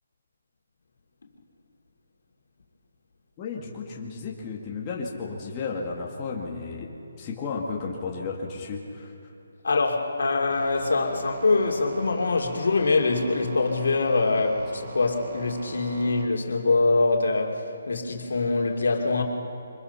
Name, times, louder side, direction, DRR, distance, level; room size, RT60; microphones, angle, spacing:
voice 1, 3.4-6.9 7.2-9.1, left 4 dB, 25° left, -3 dB, 2.0 m, -33 dB
voice 2, 9.6-19.2, left 3 dB, 75° left, 2 dB, 2.7 m, -24 dB
sound 1, 10.5-16.3, right 3 dB, 45° right, 2.0 m, -40 dB
24.5 x 20.5 x 5.8 m, 2.8 s
hypercardioid pair, 165°, 0 cm